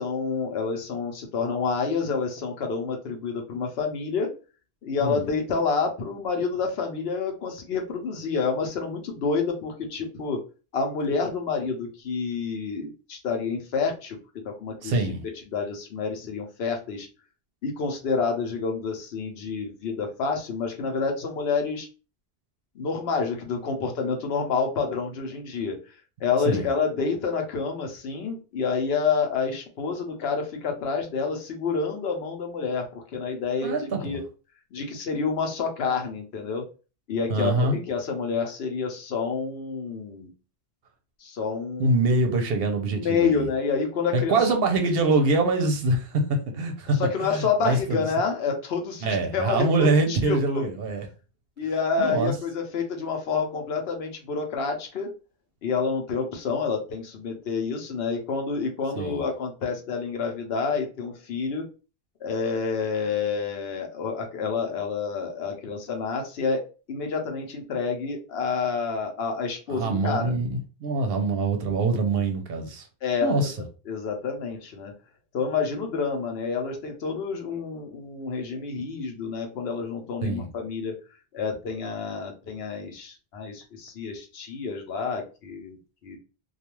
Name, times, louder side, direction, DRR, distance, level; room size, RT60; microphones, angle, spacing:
voice 1, 0.0-4.3 4.8-10.4 10.7-14.2 14.4-15.1 15.5-17.1 17.6-21.9 22.8-25.8 26.2-34.2 34.7-36.6 37.1-40.3 41.2-41.9 42.3-42.4 42.9-44.4 47.0-50.7 51.6-55.1 55.6-61.6 62.2-70.3 73.0-73.5 73.9-74.9 75.3-80.9 81.3-85.8 86.0-86.2, left 5 dB, 70° left, 0.8 m, -28 dB
voice 2, 14.8-15.2 26.5-26.7 33.6-34.2 37.3-37.8 41.8-43.5 44.1-48.0 49.0-51.1 52.0-52.3 58.9-59.2 69.7-72.9 73.2-73.5 80.2-80.5, right 2 dB, 65° right, 0.8 m, -24 dB
2.4 x 2.2 x 2.9 m
omnidirectional pair, 1.1 m